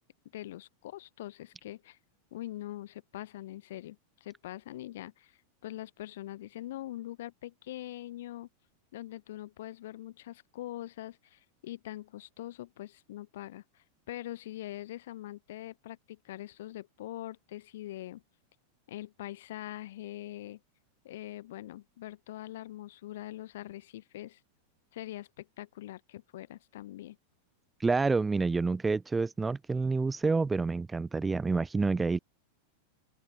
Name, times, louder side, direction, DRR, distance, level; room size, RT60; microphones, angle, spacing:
voice 1, 0.3-2.0 2.3-8.5 8.9-18.2 18.9-20.6 21.0-24.4 24.9-27.2, left 14 dB, 55° left, 0.6 m, -43 dB
voice 2, 27.8-32.2, right 4 dB, 10° right, 0.6 m, -28 dB
open air
figure-of-eight pair, 90°, 0 cm